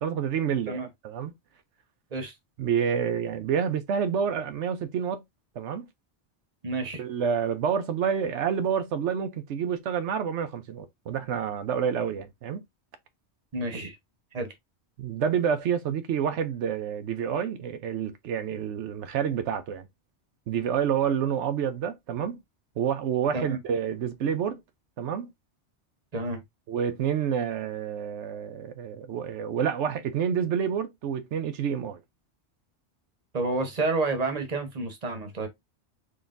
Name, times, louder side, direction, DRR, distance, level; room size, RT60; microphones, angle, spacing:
voice 1, 0.0-1.3 2.6-5.2 5.6-5.9 7.0-12.6 15.0-19.9 20.5-22.4 22.8-24.6 25.0-25.3 26.7-32.0, right 7 dB, 80° right, 1.0 m, -28 dB
voice 2, 6.6-7.0 13.5-14.0 14.3-14.5 23.3-23.6 26.1-26.4 33.3-35.5, right 3 dB, 35° right, 1.1 m, -29 dB
3.9 x 3.4 x 2.5 m
omnidirectional pair, 1.2 m